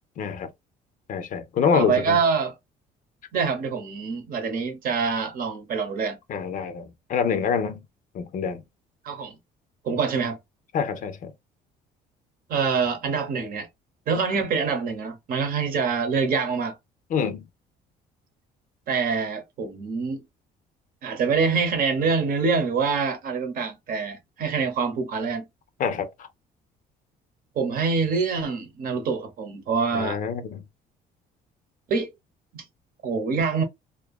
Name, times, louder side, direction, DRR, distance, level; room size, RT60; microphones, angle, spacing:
voice 1, 0.2-0.5 1.1-2.2 6.3-7.8 8.1-8.6 10.7-11.3 17.1-17.4 25.8-26.1 29.9-30.6, left 6 dB, 50° left, 0.5 m, -26 dB
voice 2, 1.7-2.5 3.3-6.2 9.0-9.3 9.8-10.4 12.5-13.7 14.1-16.8 18.9-20.2 21.0-25.4 27.6-30.2 31.9-32.1 32.5-32.6 33.0-33.6, right 5 dB, 55° right, 0.8 m, -25 dB
2.6 x 2.3 x 2.3 m
cardioid pair, 110°, 17 cm